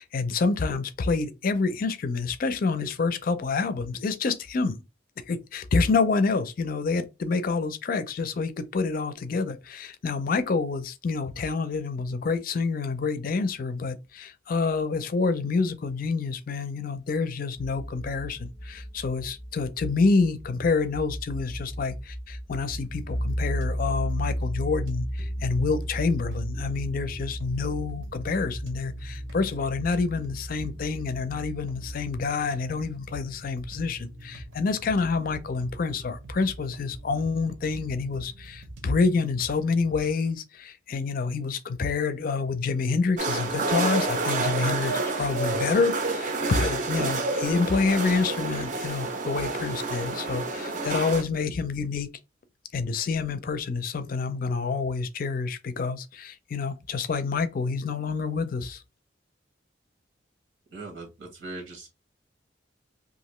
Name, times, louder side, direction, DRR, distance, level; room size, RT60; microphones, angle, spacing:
voice 1, 0.0-4.8 5.3-52.1 52.7-58.8, left 4 dB, 50° left, 0.4 m, -27 dB
sound 1, 17.6-32.3, equal, ahead, 0.6 m, -35 dB
sound 2, 22.7-40.1, right 1 dB, 75° right, 0.8 m, -44 dB
sound 3, 43.2-51.2, right 3 dB, 45° right, 0.5 m, -29 dB
voice 2, 60.7-61.9, right 3 dB, 90° right, 1.1 m, -40 dB
2.9 x 2.4 x 3.0 m
head